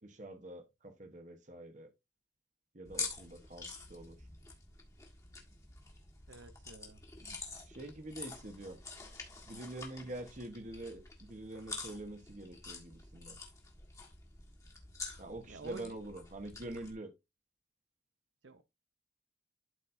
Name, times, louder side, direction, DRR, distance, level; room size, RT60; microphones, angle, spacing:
voice 1, 0.0-1.9 2.7-4.2 7.2-7.4 7.7-8.8 9.5-13.4 15.2-17.1, right 1 dB, 45° right, 1.1 m, -46 dB
sound 1, 2.8-16.9, left 4 dB, 20° left, 1.6 m, -47 dB
voice 2, 6.3-7.0 15.5-16.0 18.4-18.6, right 3 dB, 90° right, 0.8 m, -50 dB
12.0 x 4.2 x 2.7 m
head